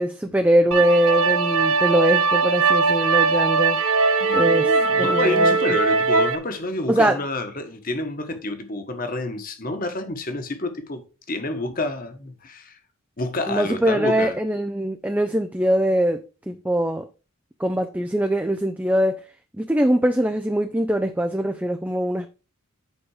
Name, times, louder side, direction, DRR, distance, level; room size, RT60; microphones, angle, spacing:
voice 1, 0.0-4.7 5.0-5.6 6.9-7.2 13.5-17.1 17.6-19.2 19.6-22.3, right 1 dB, 5° right, 0.5 m, -22 dB
sound 1, 0.7-6.4, right 4 dB, 70° right, 1.3 m, -20 dB
voice 2, 4.2-12.8 13.2-14.4, left 2 dB, 40° left, 1.4 m, -29 dB
8.7 x 5.2 x 4.8 m
head